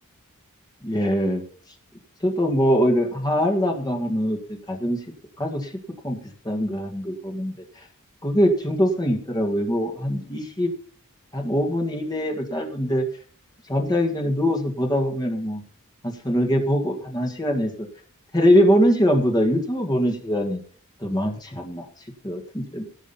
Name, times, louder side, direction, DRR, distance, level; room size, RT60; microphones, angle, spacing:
voice 1, 0.8-1.4 2.2-5.0 5.4-5.7 6.0-6.2 6.4-7.5 8.2-10.7 11.3-13.1 13.7-15.6 16.0-17.9 18.3-20.6 21.0-21.9 22.2-22.8, equal, 20° left, 2 dB, 1.9 m, -22 dB
17.5 x 6.3 x 5.6 m, 0.43 s
head